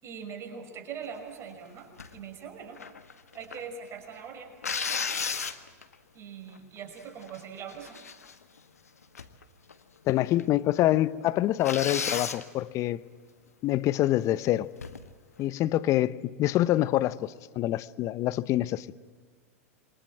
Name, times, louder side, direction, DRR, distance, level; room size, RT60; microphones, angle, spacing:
voice 1, 0.0-2.8 3.3-4.5 6.1-8.0, right 7 dB, 35° right, 5.6 m, -42 dB
sound 1, 2.0-2.2 2.8-3.6 4.6-5.9 6.6-6.7 7.0-7.4 7.7-8.6 9.1-9.4 9.7-9.8 10.4-10.5 10.8-10.9 11.6-12.4 14.8-15.1, left 6 dB, 90° left, 1.5 m, -33 dB
voice 2, 10.1-13.0 13.6-14.7 15.4-18.9, left 14 dB, 40° left, 0.9 m, -26 dB
28.0 x 24.0 x 7.6 m
hypercardioid pair, 100°, 8 cm